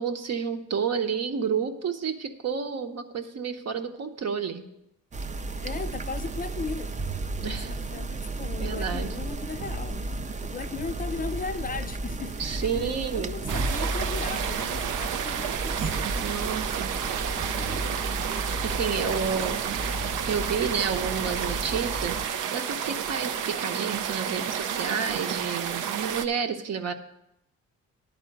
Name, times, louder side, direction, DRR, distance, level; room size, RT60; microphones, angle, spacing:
voice 1, 0.0-4.6 7.4-7.7 8.6-9.1 12.4-13.3 16.2-17.2 18.6-19.6 20.2-26.9, right 6 dB, 55° right, 1.0 m, -30 dB
sound 1, 5.1-22.3, right 2 dB, 25° right, 0.5 m, -33 dB
voice 2, 5.6-6.9 7.4-10.1 10.4-16.3 16.6-18.1 18.9-19.6 20.3-20.5, left 5 dB, 30° left, 0.4 m, -38 dB
sound 2, 13.5-26.3, right 8 dB, 90° right, 0.7 m, -31 dB
10.5 x 4.3 x 7.9 m
cardioid pair, 90°, 30 cm